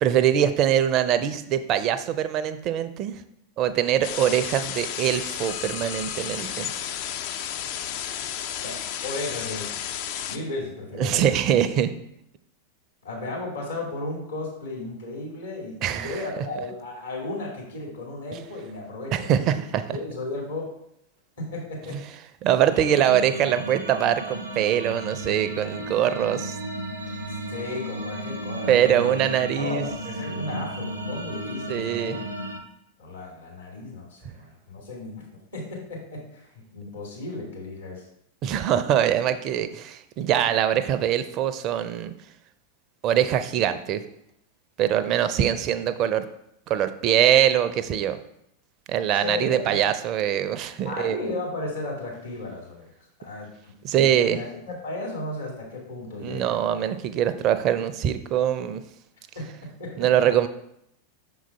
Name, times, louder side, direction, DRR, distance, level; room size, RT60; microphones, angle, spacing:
voice 1, 0.0-3.1 3.6-6.7 11.0-11.9 15.8-16.2 19.1-20.0 21.9-22.0 22.4-26.6 28.7-29.8 31.7-32.2 38.4-42.1 43.0-44.0 44.8-46.3 46.7-48.2 48.9-51.2 53.8-54.4 56.2-58.8 60.0-60.5, right 10 dB, 35° right, 11 dB, 0.4 m, -23 dB
sound 1, 4.0-10.4, left 10 dB, 45° left, 0.4 m, -32 dB
voice 2, 8.6-9.7 10.3-11.4 13.0-19.6 19.9-20.7 21.4-22.2 27.5-29.2 29.6-32.2 32.4-32.5 33.0-38.1 49.1-49.9 50.8-52.9 53.2-56.6 59.4-60.3, left 2 dB, 70° left, -3 dB, 2.4 m, -35 dB
sound 2, 22.7-32.6, right 1 dB, 80° right, 0.7 m, -34 dB
6.1 x 3.9 x 4.1 m, 0.76 s
figure-of-eight pair, 90°, 0 cm